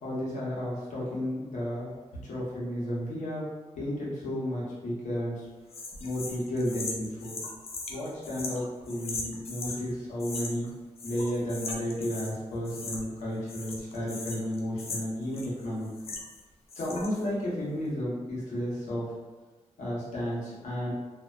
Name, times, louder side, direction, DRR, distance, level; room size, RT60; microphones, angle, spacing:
voice 1, 0.0-1.9 2.2-3.4 3.7-5.4 6.0-7.3 7.9-10.7 11.0-15.9 16.7-19.0 19.8-20.9, equal, 85° left, -7 dB, 0.9 m, -32 dB
sound 1, 5.7-9.8 10.2-10.7 11.0-12.4 12.6-13.2 13.5-16.4 16.7-17.2, left 3 dB, 55° left, 0.4 m, -39 dB
2.5 x 2.1 x 2.4 m, 1.2 s
wide cardioid pair, 125°, 12 cm